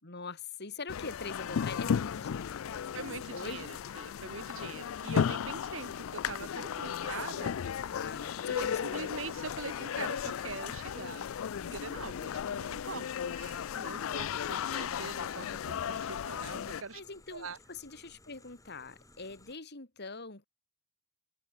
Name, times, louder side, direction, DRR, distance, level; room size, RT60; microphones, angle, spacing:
voice 1, 0.0-3.0 3.3-3.7 7.9-9.1 16.9-20.5, left 3 dB, 55° left, 3.2 m, -43 dB
sound 1, 0.9-16.8, left 8 dB, 85° left, 0.4 m, -35 dB
voice 2, 2.9-7.8 8.5-11.3 11.6-17.0 17.3-17.6, right 4 dB, 75° right, 1.5 m, -43 dB
sound 2, 12.6-19.6, left 2 dB, 15° left, 2.5 m, -59 dB
head